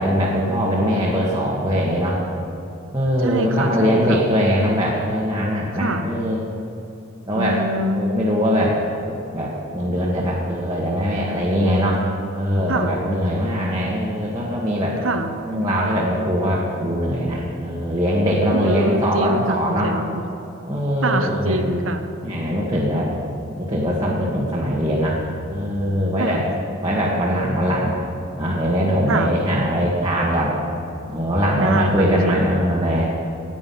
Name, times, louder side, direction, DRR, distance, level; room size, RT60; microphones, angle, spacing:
voice 1, 0.0-2.2 2.9-6.4 7.3-7.6 7.9-8.8 9.1-12.0 12.3-15.0 15.4-19.9 20.7-21.6 22.2-23.1 23.6-25.2 25.5-26.4 26.8-28.0 28.4-30.6 31.1-33.1, equal, 20° right, -5 dB, 1.6 m, -21 dB
voice 2, 3.2-4.2 5.7-6.1 7.3-8.1 12.7-13.0 15.0-15.4 18.5-20.2 21.0-22.0 22.9-23.0 26.2-26.4 29.1-29.3 31.6-32.6, right 2 dB, 80° right, 7 dB, 1.1 m, -25 dB
15.0 x 9.4 x 5.8 m, 2.9 s
head